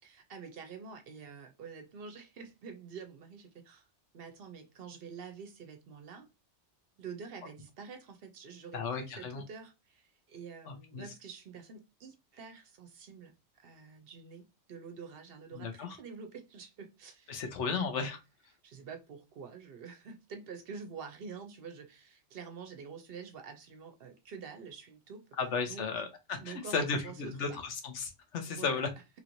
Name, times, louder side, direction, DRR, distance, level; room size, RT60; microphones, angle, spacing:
voice 1, 0.0-3.9 4.1-6.3 7.0-17.7 18.6-25.2 25.7-25.9 26.4-27.6 28.5-28.9, right 5 dB, 60° right, 0.7 m, -47 dB
voice 2, 8.7-9.4 10.7-11.0 15.5-16.0 17.3-18.2 25.4-28.9, left 5 dB, 80° left, 1.1 m, -34 dB
3.0 x 2.9 x 2.5 m
omnidirectional pair, 1.2 m